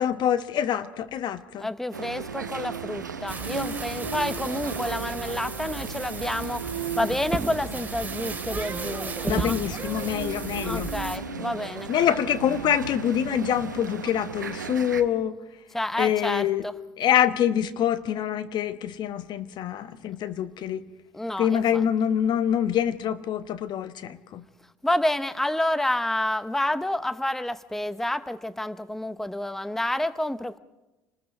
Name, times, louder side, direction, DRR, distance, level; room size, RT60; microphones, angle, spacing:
voice 1, 0.0-1.7 9.3-10.9 11.9-15.4 16.0-16.7 17.0-20.8 21.4-24.4, left 9 dB, 50° left, 11 dB, 1.1 m, -25 dB
voice 2, 1.6-9.6 10.6-11.9 15.7-16.8 21.1-21.8 24.8-30.6, left 1 dB, 5° left, 14 dB, 0.7 m, -29 dB
sound 1, 1.9-15.0, right 5 dB, 90° right, 0.8 m, -35 dB
sound 2, 3.3-11.2, right 4 dB, 20° right, 3.1 m, -35 dB
28.5 x 20.0 x 5.2 m, 1.0 s
figure-of-eight pair, 60°, 10 cm